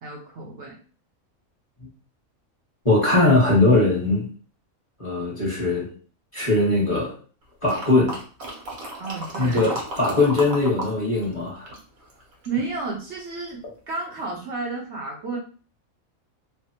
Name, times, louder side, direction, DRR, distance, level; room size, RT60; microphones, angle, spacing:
voice 1, 0.0-0.8 9.0-9.7 12.5-15.4, right 3 dB, 65° right, -2 dB, 0.8 m, -32 dB
voice 2, 2.8-4.2 5.0-5.9 6.3-7.1 7.6-8.1 9.4-11.7, left 2 dB, 25° left, -6 dB, 1.0 m, -20 dB
sound 1, 7.7-10.9 11.2-12.6 13.2-13.3, right 1 dB, 80° right, 1.3 m, -34 dB
3.3 x 2.1 x 2.7 m, 0.40 s
omnidirectional pair, 1.4 m